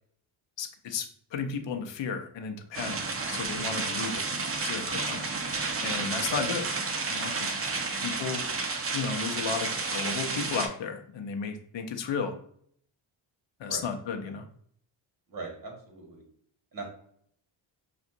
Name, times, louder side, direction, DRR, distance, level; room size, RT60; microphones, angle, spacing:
voice 1, 0.6-3.0 3.3-4.2 4.6-5.3 5.8-6.6 7.1-7.7 8.0-8.4 8.9-12.4 13.6-14.5, left 6 dB, 65° left, 5 dB, 0.8 m, -34 dB
sound 1, 2.7-10.7, right 3 dB, 30° right, 0.7 m, -31 dB
voice 2, 15.3-16.2 16.7-16.9, right 3 dB, 45° right, 1 dB, 1.7 m, -40 dB
5.9 x 2.5 x 2.7 m, 0.63 s
cardioid pair, 80°, 49 cm